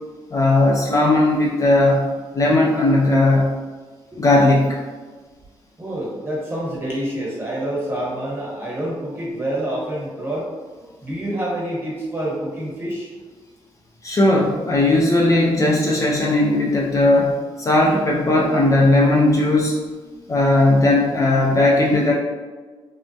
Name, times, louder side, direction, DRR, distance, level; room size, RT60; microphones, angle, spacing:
voice 1, 0.3-2.1 2.3-3.5 4.2-4.8 14.0-17.3 17.6-19.7 20.3-22.1, left 2 dB, 35° left, -2 dB, 0.4 m, -17 dB
voice 2, 5.8-10.5 11.0-13.1, right 1 dB, 25° right, -5 dB, 1.0 m, -27 dB
3.3 x 2.0 x 2.7 m, 1.4 s
cardioid pair, 105°, 10 cm